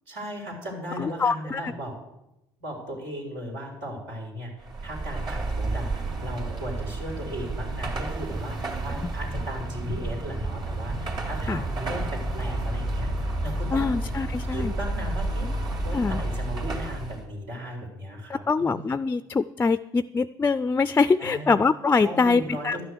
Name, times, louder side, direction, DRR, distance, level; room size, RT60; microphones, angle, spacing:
voice 1, 0.1-2.0 2.6-4.5 4.8-13.8 14.5-15.5 15.8-19.0 21.2-21.6 22.0-22.8, equal, 80° right, 0 dB, 3.9 m, -36 dB
voice 2, 1.0-1.7 11.5-11.6 13.7-14.7 15.9-16.2 18.3-22.8, left 4 dB, 20° left, 14 dB, 0.3 m, -24 dB
Car passing by / Traffic noise roadway noise / Engine, 4.6-17.2, right 2 dB, 45° right, 2.7 m, -30 dB
11.5 x 6.6 x 8.0 m, 0.89 s
supercardioid pair, 75°, 11 cm